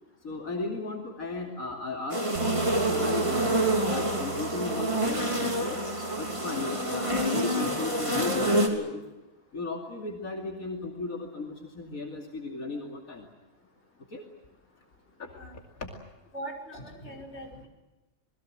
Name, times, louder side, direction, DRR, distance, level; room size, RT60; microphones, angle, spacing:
voice 1, 0.2-5.8 6.2-9.0 9.5-13.3 14.1-14.2 15.2-15.3 15.8-15.9, left 3 dB, 85° left, 1 dB, 3.1 m, -35 dB
sound 1, 2.1-8.7, right 1 dB, 20° right, 3.5 m, -27 dB
Bass guitar, 2.4-8.6, right 6 dB, 85° right, 1.7 m, -42 dB
voice 2, 16.3-17.7, right 1 dB, 50° left, 0 dB, 5.8 m, -41 dB
28.5 x 21.0 x 7.7 m, 1.0 s
omnidirectional pair, 1.4 m